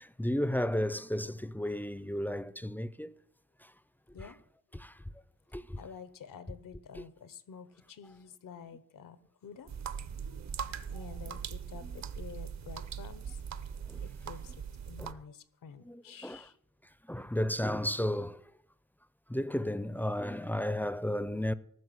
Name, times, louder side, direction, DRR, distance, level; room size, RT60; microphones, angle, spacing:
voice 1, 0.0-3.1 4.7-4.9 5.5-5.8 7.0-7.1 11.8-11.9 13.9-14.0 15.0-15.2 15.8-16.4 17.1-18.4 19.3-21.5, left 1 dB, 5° left, 0.5 m, -33 dB
voice 2, 5.8-9.7 10.7-13.4 14.0-16.6, left 7 dB, 90° left, 1.1 m, -49 dB
sound 1, 9.7-15.1, right 7 dB, 60° right, 0.8 m, -40 dB
14.5 x 6.3 x 9.4 m
wide cardioid pair, 130°, 32 cm